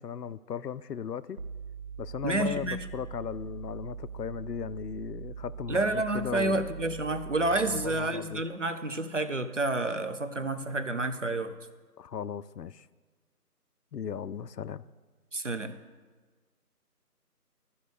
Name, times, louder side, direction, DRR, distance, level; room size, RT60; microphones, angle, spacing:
voice 1, 0.0-1.4 2.0-5.8 6.1-6.6 7.6-8.4 12.0-12.9 13.9-14.8, left 8 dB, 90° left, 16 dB, 0.5 m, -37 dB
sound 1, 1.4-8.2, right 6 dB, 65° right, 1.4 m, -42 dB
voice 2, 2.2-2.8 5.7-11.6 15.3-15.7, right 2 dB, 50° right, 10 dB, 0.7 m, -29 dB
12.5 x 5.4 x 6.6 m, 1.4 s
figure-of-eight pair, 170°, 47 cm